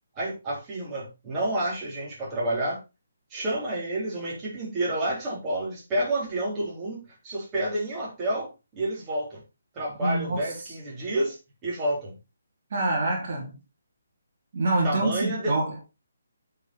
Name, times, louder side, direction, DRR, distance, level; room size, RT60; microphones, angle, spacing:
voice 1, 0.2-2.8 3.3-9.4 9.7-11.4 11.6-12.1 14.8-15.6, right 1 dB, 20° right, 3.5 m, -29 dB
voice 2, 10.0-10.5 12.7-13.5 14.5-15.9, right 2 dB, 45° right, 3.3 m, -26 dB
9.7 x 5.6 x 4.0 m
figure-of-eight pair, 140°, 0 cm